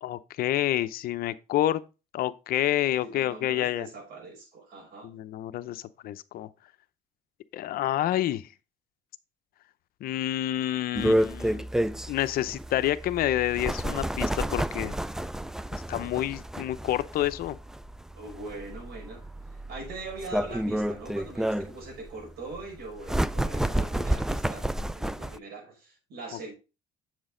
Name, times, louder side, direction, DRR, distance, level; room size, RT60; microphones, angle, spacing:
voice 1, 0.0-1.8 2.1-3.9 5.0-6.5 7.5-8.5 10.0-11.7 12.1-15.0 15.7-17.6, left 13 dB, 65° left, 0.7 m, -28 dB
voice 2, 3.0-5.1 18.1-19.3 19.5-24.6 24.9-26.5, right 3 dB, 80° right, 5.6 m, -42 dB
sound 1, 10.9-25.4, right 1 dB, 5° right, 0.3 m, -30 dB
8.0 x 6.2 x 3.8 m
cardioid pair, 110°, 17 cm